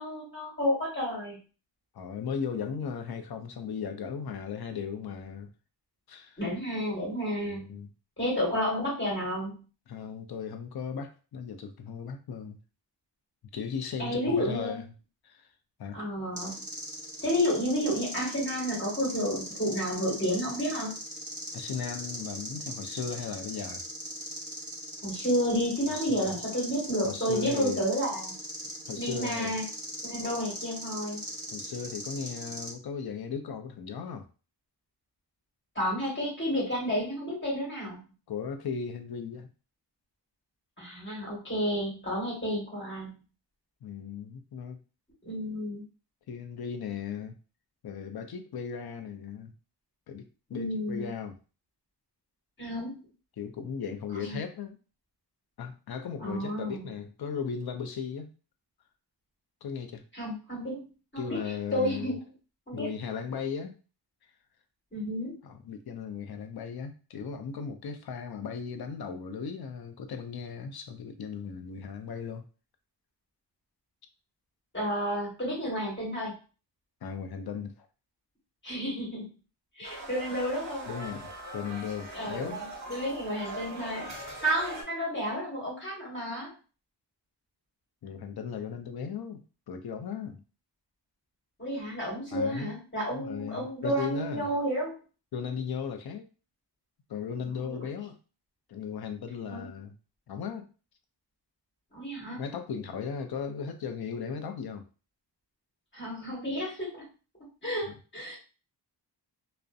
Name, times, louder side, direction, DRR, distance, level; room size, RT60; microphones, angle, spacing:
voice 1, 0.0-1.4 6.4-7.7 8.2-9.6 14.0-14.8 15.9-16.6 17.2-20.9 25.0-28.4 29.0-29.6 30.0-31.2 35.7-38.0 40.8-43.2 45.2-45.8 50.5-51.1 52.6-53.0 54.2-54.4 56.2-56.9 60.1-60.8 61.1-61.4 61.7-62.2 62.7-62.9 64.9-65.4 74.7-76.3 78.6-79.3 79.8-80.9 82.1-82.4 82.9-84.1 84.4-86.5 91.6-94.9 97.6-97.8 99.5-99.7 101.9-102.4 105.9-107.0 107.6-108.4, equal, 25° left, -5 dB, 1.4 m, -31 dB
voice 2, 1.9-5.5 6.1-6.4 7.5-7.9 9.9-12.6 13.5-14.8 15.2-15.5 15.8-16.0 21.5-23.8 25.9-26.4 27.0-27.8 28.9-29.6 31.5-34.3 38.3-39.5 43.8-44.8 46.3-47.4 47.8-49.5 50.1-51.4 53.4-54.8 55.6-58.3 59.6-60.0 61.2-62.1 62.7-63.8 65.4-72.4 77.0-77.9 80.9-82.6 88.0-90.4 92.3-92.7 93.1-94.5 95.3-96.3 97.1-98.2 98.7-99.9 100.3-100.7 102.3-104.9, left 6 dB, 60° left, 7 dB, 0.5 m, -37 dB
sound 1, 16.4-32.7, equal, 15° right, 1.1 m, -40 dB
sound 2, 79.8-84.8, right 2 dB, 40° right, 0.9 m, -41 dB
2.5 x 2.1 x 2.3 m, 0.35 s
wide cardioid pair, 85°, 43 cm